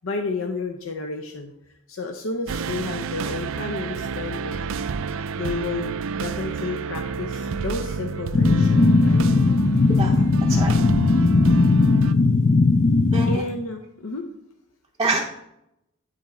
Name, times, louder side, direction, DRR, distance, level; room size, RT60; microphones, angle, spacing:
voice 1, 0.0-1.5 1.9-4.6 5.4-9.3 13.3-14.3, left 3 dB, 75° left, 4 dB, 0.6 m, -31 dB
sound 1, 2.5-12.1, right 5 dB, 70° right, 0.4 m, -30 dB
sound 2, 8.3-13.4, left 3 dB, 35° left, 0.4 m, -18 dB
voice 2, 10.0-10.8 13.1-13.4 15.0-15.2, right 3 dB, 20° right, -1 dB, 0.6 m, -26 dB
10.0 x 4.1 x 4.2 m, 0.83 s
head